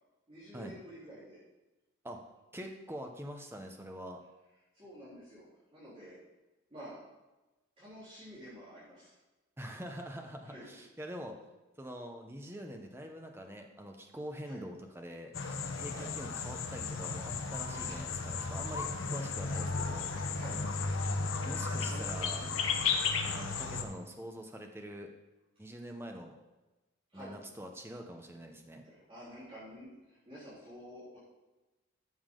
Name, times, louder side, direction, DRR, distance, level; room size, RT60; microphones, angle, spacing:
voice 1, 0.3-1.4 4.7-5.5 5.7-6.2 6.7-7.0 7.8-9.1 10.4-10.7 14.4-14.6 15.9-16.1 20.3-20.6 21.9-22.0 22.3-22.7 27.1-27.4 28.8-31.2, equal, 25° right, -12 dB, 3.7 m, -50 dB
voice 2, 2.5-4.2 9.6-11.4 11.8-15.3 15.7-20.1 21.4-22.4 23.2-25.1 25.6-26.4 27.1-28.8, equal, 10° right, 3 dB, 0.9 m, -44 dB
sound 1, 15.3-23.8, left 4 dB, 75° left, 0.9 m, -34 dB
13.0 x 7.1 x 3.8 m, 1.1 s
head